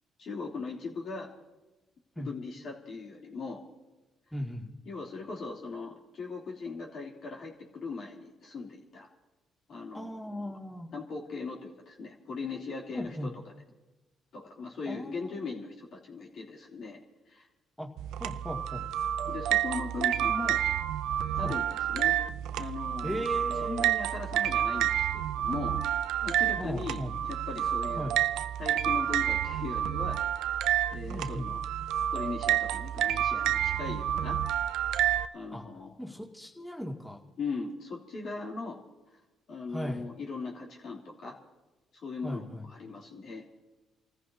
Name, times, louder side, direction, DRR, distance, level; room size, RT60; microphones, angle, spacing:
voice 1, 0.2-1.3 2.2-3.6 4.8-9.1 9.7-10.6 10.9-13.4 14.3-17.0 17.3-17.5 19.3-20.6 21.4-22.2 22.5-23.3 23.6-25.8 26.2-28.1 28.6-30.2 30.5-31.6 32.1-34.4 35.3-36.0 37.4-38.8 39.5-41.3 41.9-43.4, left 4 dB, 60° left, -2 dB, 3.1 m, -39 dB
voice 2, 4.3-4.7 9.9-10.9 12.9-13.3 14.9-15.5 17.8-17.9 18.2-18.8 21.4-21.5 23.0-24.0 26.6-27.2 28.0-28.2 31.1-31.5 35.5-35.6 36.0-37.2 39.7-40.1 42.2-42.7, equal, 5° left, -1 dB, 2.3 m, -37 dB
sound 1, 18.0-35.3, right 11 dB, 80° right, 0.4 m, -29 dB
30.0 x 14.5 x 2.8 m, 1.1 s
supercardioid pair, 60°, 0 cm